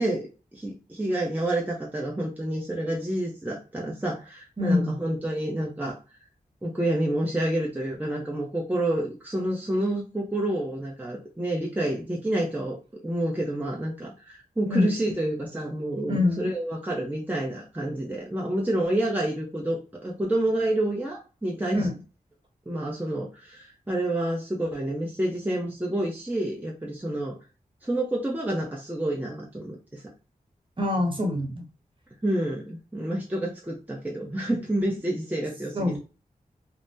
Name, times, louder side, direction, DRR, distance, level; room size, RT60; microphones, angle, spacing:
voice 1, 0.0-6.0 6.6-12.8 13.0-21.9 22.7-27.3 27.8-30.0 32.2-36.0, right 1 dB, 10° right, -2 dB, 0.8 m, -28 dB
voice 2, 4.6-5.0 14.7-14.9 16.1-16.5 21.7-21.9 30.8-31.6 35.7-36.0, left 2 dB, 35° right, 2 dB, 1.2 m, -25 dB
3.3 x 2.1 x 2.6 m, 0.33 s
cardioid pair, 40°, 15 cm